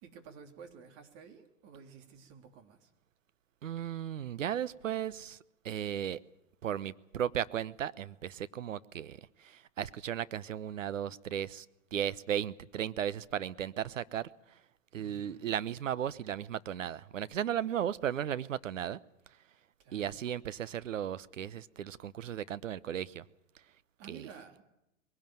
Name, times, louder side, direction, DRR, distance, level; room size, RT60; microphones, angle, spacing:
voice 1, 0.0-2.9 15.0-15.5 19.8-20.2 24.0-24.6, right 6 dB, 45° right, 3.5 m, -52 dB
voice 2, 3.6-5.4 5.6-6.2 6.6-11.7 11.9-14.3 14.9-19.0 19.9-23.2 24.1-24.3, right 10 dB, 80° right, 0.9 m, -35 dB
21.5 x 17.5 x 9.1 m
hypercardioid pair, 110°, 38 cm